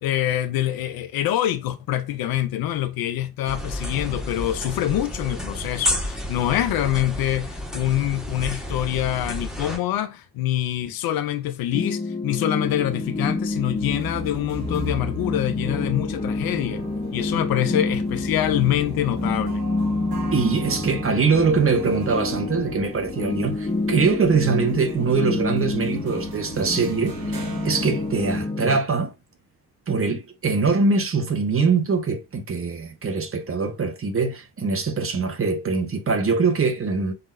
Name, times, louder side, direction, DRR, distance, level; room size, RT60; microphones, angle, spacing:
voice 1, 0.0-16.8 17.1-19.6, left 13 dB, 50° left, 0.6 m, -25 dB
sound 1, 3.5-9.8, equal, ahead, 1.5 m, -30 dB
Harp and Pad Fm Complicated Loop, 11.7-28.8, left 2 dB, 15° left, 1.3 m, -28 dB
sound 2, 12.6-28.5, right 1 dB, 85° right, 1.1 m, -38 dB
voice 2, 20.3-29.1 29.9-37.1, right 4 dB, 30° right, 1.0 m, -23 dB
5.6 x 3.6 x 2.5 m
figure-of-eight pair, 45°, 48 cm